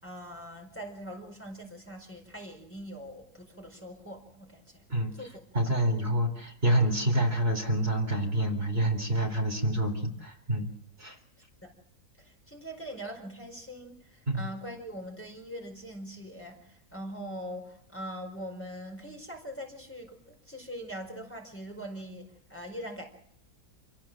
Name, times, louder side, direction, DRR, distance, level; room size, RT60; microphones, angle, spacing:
voice 1, 0.0-4.8 5.1-5.4 11.6-11.7 12.2-23.0, equal, 10° left, 2 dB, 4.8 m, -42 dB
voice 2, 5.5-10.7 11.0-11.2 14.3-14.4, right 1 dB, 40° right, 3 dB, 4.1 m, -27 dB
28.5 x 17.0 x 7.6 m, 0.74 s
omnidirectional pair, 1.6 m